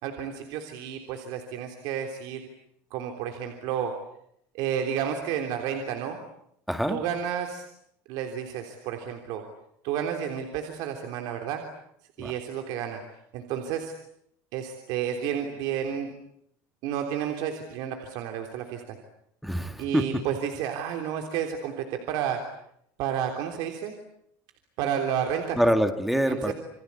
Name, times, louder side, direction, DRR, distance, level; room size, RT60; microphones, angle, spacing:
voice 1, 0.0-2.4 2.9-3.9 4.5-6.2 6.9-7.6 8.1-9.4 9.8-11.6 12.2-13.0 13.3-13.9 14.5-16.1 16.8-19.0 19.8-22.4 23.0-24.0 24.8-25.6 26.1-26.5, right 9 dB, 65° right, 4 dB, 3.5 m, -31 dB
voice 2, 6.7-7.0 12.2-12.3 19.4-20.0 25.6-26.5, equal, ahead, 8 dB, 1.9 m, -25 dB
28.5 x 25.0 x 8.4 m, 0.72 s
cardioid pair, 155°, 7 cm